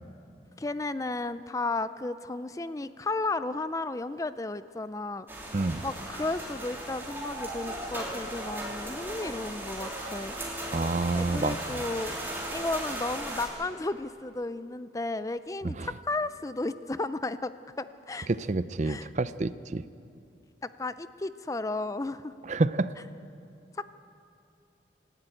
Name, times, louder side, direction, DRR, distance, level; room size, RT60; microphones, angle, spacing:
voice 1, 0.6-5.3 5.8-10.3 11.1-12.2 12.5-17.5 17.8-18.3 18.8-19.1 20.6-22.3 23.7-23.9, left 2 dB, 20° left, 13 dB, 0.4 m, -33 dB
sound 1, 5.3-13.5, right 1 dB, 15° right, 3.4 m, -37 dB
voice 2, 5.5-5.8 10.7-11.8 15.6-15.9 18.3-19.8 22.5-22.9, right 3 dB, 40° right, 15 dB, 0.5 m, -28 dB
27.5 x 12.0 x 9.1 m, 2.6 s
head